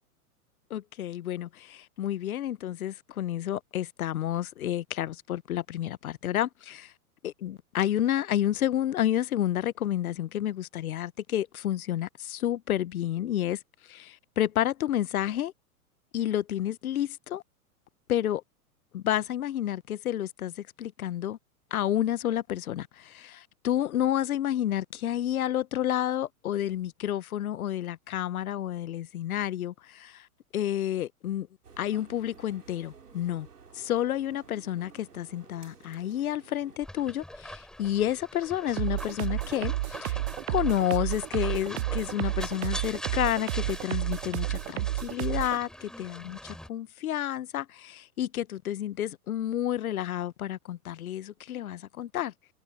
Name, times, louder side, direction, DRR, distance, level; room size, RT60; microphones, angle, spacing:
voice 1, 0.7-6.9 7.4-13.6 13.9-15.5 16.1-17.4 18.1-18.4 18.9-21.4 21.7-30.3 30.5-31.5 31.8-33.5 33.7-40.2 40.5-52.3, left 11 dB, 70° left, 1.0 m, -30 dB
sound 1, 31.6-36.8, right 6 dB, 80° right, 4.1 m, -53 dB
sound 2, 36.8-46.7, equal, ahead, 6.1 m, -43 dB
sound 3, 38.8-45.6, right 17 dB, 45° right, 0.6 m, -31 dB
figure-of-eight pair, 105°, 46 cm